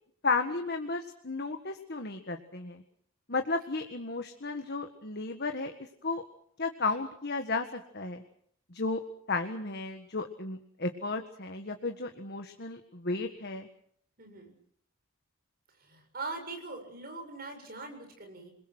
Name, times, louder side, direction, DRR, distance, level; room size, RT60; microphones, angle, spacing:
voice 1, 0.2-2.8 3.3-5.7 6.0-6.2 6.6-8.2 8.7-9.0 9.3-13.7, left 3 dB, 50° left, 5 dB, 1.7 m, -33 dB
voice 2, 14.2-14.5 15.8-18.5, right 3 dB, 45° right, 4 dB, 7.1 m, -42 dB
28.0 x 21.5 x 6.2 m, 0.66 s
head